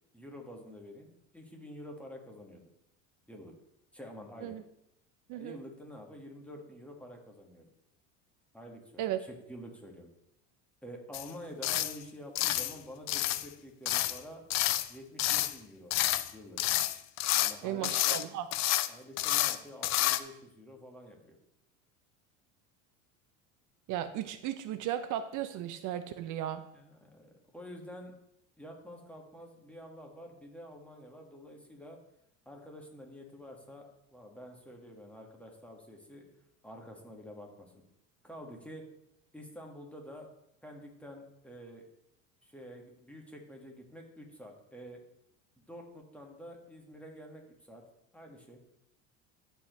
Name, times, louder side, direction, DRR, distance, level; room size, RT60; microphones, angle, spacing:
voice 1, 0.1-2.6 3.3-3.5 3.9-4.6 5.3-7.7 8.5-9.0 9.5-10.1 10.8-14.4 14.9-15.9 16.3-16.6 17.3-18.2 18.9-21.4 26.7-28.1 28.6-32.0 32.5-33.8 34.1-36.3 36.6-37.7 38.2-38.9 39.3-40.3 40.6-41.9 42.4-45.0 45.6-47.8 48.1-48.6, equal, 5° left, 1 dB, 1.7 m, -48 dB
sound 1, 11.1-11.3 11.6-12.0 12.4-12.8 13.1-13.5 13.9-14.2 14.5-14.9 15.2-15.6 15.9-16.3 16.6-17.5 17.8-18.2 18.5-18.9 19.2-19.6 19.8-20.2, left 14 dB, 45° left, 0.5 m, -29 dB
voice 2, 17.6-18.5 23.9-26.7, right 11 dB, 50° right, 11 dB, 0.6 m, -35 dB
13.5 x 4.6 x 3.2 m, 0.80 s
supercardioid pair, 90°, 39 cm